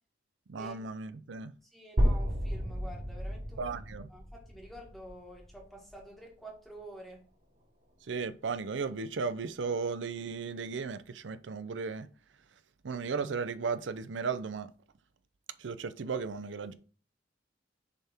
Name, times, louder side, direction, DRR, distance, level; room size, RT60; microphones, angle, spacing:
voice 1, 0.5-1.5 3.6-4.1 8.1-12.1 12.8-14.7 15.6-16.7, right 5 dB, 80° right, 0.5 m, -35 dB
voice 2, 1.6-3.7 4.1-7.3, right 1 dB, ahead, 1.6 m, -49 dB
sound 1, 2.0-5.9, equal, 50° right, 2.9 m, -32 dB
7.0 x 3.5 x 4.3 m
head